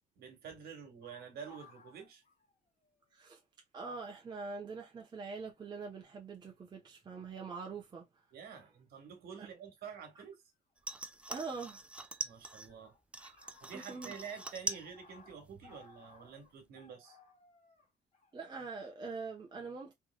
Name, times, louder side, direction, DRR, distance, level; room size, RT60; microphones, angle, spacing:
voice 1, 0.1-2.2 8.3-10.4 12.2-12.9 13.6-17.2, right 7 dB, 65° right, 1.6 m, -48 dB
sound 1, 1.0-3.1 3.4-3.5 4.4-4.7 5.7-5.9 6.7-7.2 9.8-9.9 11.3-12.1 12.4-19.0, left 3 dB, 40° left, 1.4 m, -61 dB
voice 2, 3.7-8.1 9.4-9.5 11.3-11.8 13.2-13.3 13.7-14.2 18.3-19.9, right 4 dB, 25° right, 0.9 m, -43 dB
sound 2, 10.8-12.7 13.1-14.9 15.2-15.8 16.2-16.3, right 2 dB, 5° right, 0.4 m, -42 dB
3.4 x 3.1 x 2.2 m
cardioid pair, 110°, 17 cm